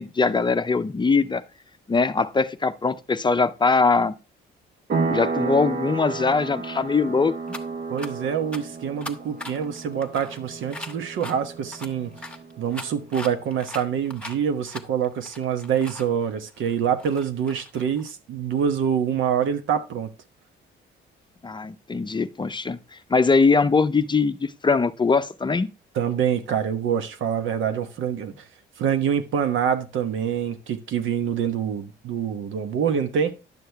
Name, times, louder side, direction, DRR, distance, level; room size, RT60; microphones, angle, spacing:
voice 1, 0.0-1.4 1.9-4.1 5.1-7.3 21.4-25.7, left 4 dB, 25° left, 0.6 m, -21 dB
sound 1, 4.9-13.2, right 4 dB, 50° right, 1.2 m, -32 dB
sound 2, 7.5-7.6 8.0-8.1 8.5-8.6 9.0-11.3 11.7-16.1 16.5-18.1, left 2 dB, 5° left, 1.2 m, -39 dB
voice 2, 7.9-12.1 12.6-20.1 25.9-28.5 28.8-33.3, right 8 dB, 80° right, 1.2 m, -25 dB
10.5 x 6.4 x 3.4 m
cardioid pair, 90°, 20 cm